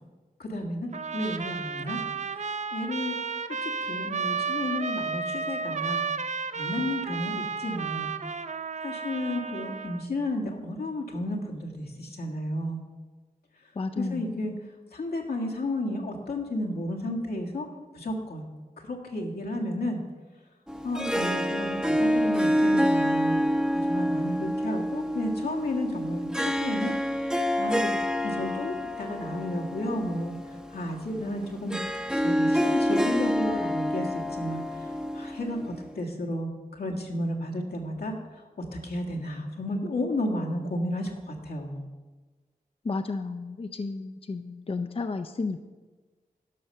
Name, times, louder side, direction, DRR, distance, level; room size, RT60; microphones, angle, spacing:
voice 1, 0.4-2.0 2.3-3.2 3.6-6.0 6.5-8.1 8.8-12.8 14.0-14.5 14.9-17.7 17.9-18.4 18.8-20.0 20.8-23.4 23.9-26.9 27.6-27.9 28.2-30.3 30.7-31.8 32.2-34.6 35.1-38.1 38.8-41.8, left 1 dB, 85° left, -1 dB, 1.7 m, -32 dB
Trumpet, 0.9-10.0, right 5 dB, 50° right, 0.5 m, -32 dB
voice 2, 13.8-14.3 42.8-45.6, left 3 dB, 35° left, 8 dB, 0.5 m, -32 dB
Harp, 20.7-35.9, equal, 5° right, 0.7 m, -28 dB
12.0 x 5.6 x 6.5 m, 1.3 s
wide cardioid pair, 65°, 16 cm